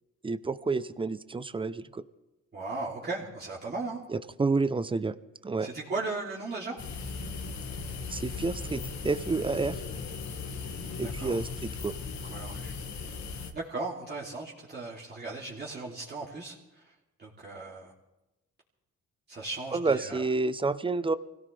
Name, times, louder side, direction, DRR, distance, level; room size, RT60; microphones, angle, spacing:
voice 1, 0.2-2.0 4.1-5.1 5.4-5.7 8.1-9.8 11.0-11.9 19.7-21.2, right 3 dB, 15° right, 14 dB, 0.7 m, -29 dB
voice 2, 2.5-4.0 5.6-6.8 10.9-11.4 12.2-12.7 13.5-16.5 16.8-16.9 17.2-17.9 19.3-20.2, right 3 dB, 35° right, -6 dB, 3.0 m, -37 dB
sound 1, 6.8-13.5, left 4 dB, 65° left, 1.8 m, -37 dB
25.0 x 17.0 x 3.4 m, 1.0 s
cardioid pair, 90°, 30 cm